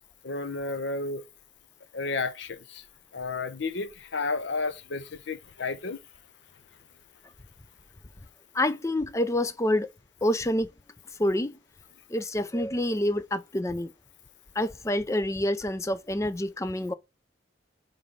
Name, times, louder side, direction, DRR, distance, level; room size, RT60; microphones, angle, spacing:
voice 1, 0.2-1.2 1.9-2.8 3.1-6.0, left 3 dB, 75° left, 0.8 m, -32 dB
voice 2, 8.5-9.9 10.2-10.7 11.2-11.6 12.1-13.9 14.6-16.9, left 1 dB, 15° left, 0.4 m, -27 dB
5.0 x 3.9 x 5.4 m
head